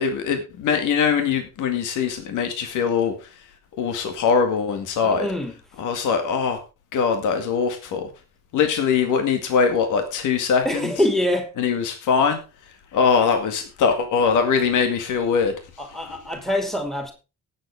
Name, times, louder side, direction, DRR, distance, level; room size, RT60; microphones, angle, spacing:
voice 1, 0.0-3.1 3.8-5.3 5.8-6.6 6.9-8.1 8.5-10.9 11.6-12.4 12.9-15.5, left 6 dB, 85° left, 2.1 m, -22 dB
voice 2, 5.0-5.6 10.6-11.5 15.8-17.1, left 1 dB, ahead, 2.8 m, -24 dB
18.0 x 7.9 x 3.5 m
cardioid pair, 90°, 30 cm